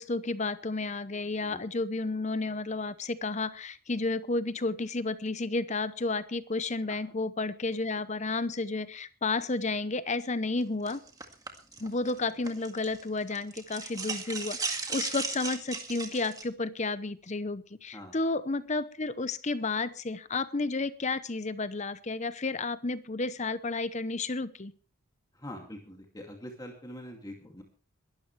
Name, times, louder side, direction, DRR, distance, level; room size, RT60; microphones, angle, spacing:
voice 1, 0.0-11.0 11.8-24.7, left 3 dB, 35° left, 14 dB, 0.8 m, -32 dB
sound 1, 10.9-13.0 13.3-16.4, right 4 dB, 15° right, 1.9 m, -36 dB
voice 2, 25.3-27.6, equal, 15° left, 2 dB, 2.5 m, -44 dB
22.0 x 12.5 x 3.3 m, 0.36 s
head